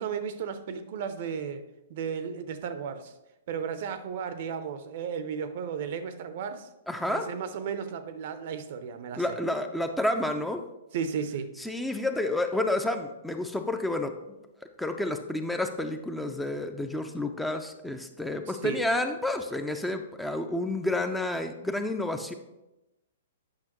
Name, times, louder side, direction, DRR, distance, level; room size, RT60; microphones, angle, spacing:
voice 1, 0.0-1.6 1.9-3.1 3.5-6.7 7.1-9.2 10.9-11.5 18.5-18.8, right 6 dB, 50° right, 0.6 m, -34 dB
voice 2, 6.9-7.3 9.2-10.6 11.6-14.4 14.8-22.3, left 1 dB, 5° left, 0.4 m, -30 dB
8.8 x 5.7 x 3.0 m
figure-of-eight pair, 115°, 0 cm